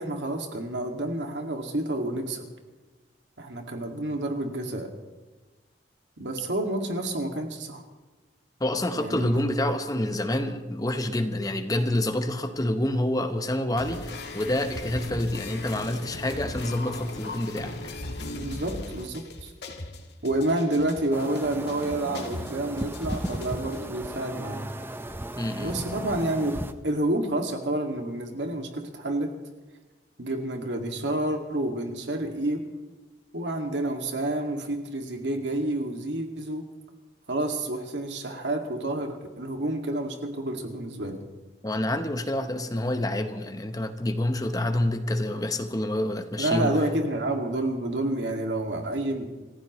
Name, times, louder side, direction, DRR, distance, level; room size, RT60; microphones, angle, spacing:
voice 1, 0.0-2.5 3.4-4.9 6.2-7.8 8.9-9.4 18.3-19.5 20.2-24.6 25.6-26.5 26.8-29.3 30.2-32.6 33.3-36.6 37.3-41.2 46.4-49.3, right 1 dB, 90° right, 3 dB, 2.2 m, -29 dB
voice 2, 8.6-17.7 25.4-25.8 41.6-46.8, left 1 dB, 20° left, 8 dB, 1.0 m, -27 dB
sound 1, 13.8-23.8, left 2 dB, 70° left, 1.7 m, -38 dB
sound 2, 21.1-26.7, right 1 dB, 10° right, 0.5 m, -35 dB
28.0 x 15.0 x 3.2 m, 1.2 s
head